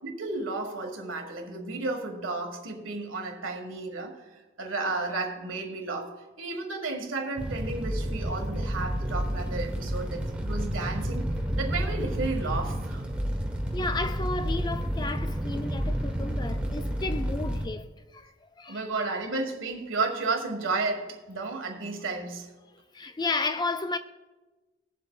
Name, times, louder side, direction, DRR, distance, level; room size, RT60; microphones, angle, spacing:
voice 1, 0.0-11.3 11.6-13.0 18.7-22.5, right 3 dB, 85° right, 1.7 m, -33 dB
Fire, 7.4-17.7, equal, 5° right, 1.2 m, -30 dB
voice 2, 13.7-19.1 22.9-24.0, left 3 dB, 20° left, 0.4 m, -33 dB
20.0 x 7.6 x 2.4 m
head